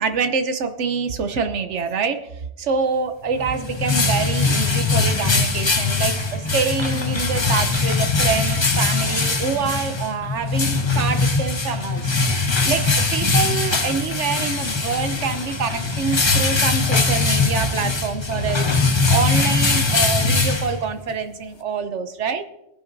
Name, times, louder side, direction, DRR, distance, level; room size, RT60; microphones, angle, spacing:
voice 1, 0.0-2.3 2.6-12.3 12.6-18.7 19.1-22.4, right 5 dB, 80° right, 8 dB, 1.1 m, -26 dB
sound 1, 3.3-21.1, left 3 dB, 25° left, 0.8 m, -21 dB
20.5 x 10.5 x 2.6 m, 0.88 s
omnidirectional pair, 1.2 m